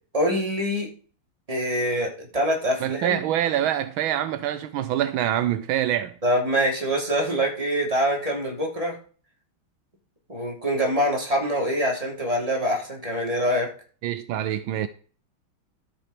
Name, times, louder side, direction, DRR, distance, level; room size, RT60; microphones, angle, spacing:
voice 1, 0.1-0.9 1.5-3.2 6.2-9.0 10.3-13.7, equal, 15° right, 3.3 m, -24 dB
voice 2, 2.8-6.1 14.0-14.9, right 11 dB, 80° right, 1.5 m, -25 dB
13.0 x 6.2 x 5.1 m
omnidirectional pair, 2.3 m